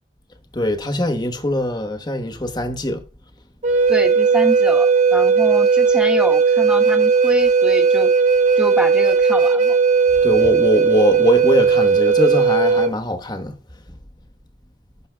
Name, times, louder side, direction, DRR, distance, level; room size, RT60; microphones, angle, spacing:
voice 1, 0.5-3.0 10.2-13.5, left 1 dB, 25° left, 1.1 m, -21 dB
Wind instrument woodwind instrument, 3.6-12.9, right 5 dB, 40° right, 0.6 m, -16 dB
voice 2, 3.9-8.1 8.6-9.8, right 1 dB, 5° right, 1.1 m, -26 dB
16.5 x 6.2 x 2.3 m
head